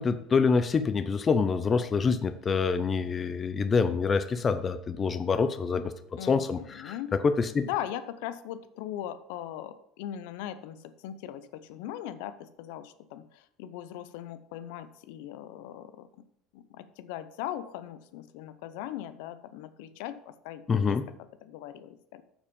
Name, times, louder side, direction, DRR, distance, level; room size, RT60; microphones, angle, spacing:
voice 1, 0.0-5.9 6.2-6.9 7.2-7.6 20.7-21.0, left 5 dB, 25° left, 10 dB, 0.5 m, -26 dB
voice 2, 6.2-7.1 7.6-16.1 16.5-21.0 21.4-22.2, left 11 dB, 80° left, 13 dB, 0.6 m, -39 dB
7.2 x 7.0 x 5.2 m, 0.75 s
cardioid pair, 145°, 0 cm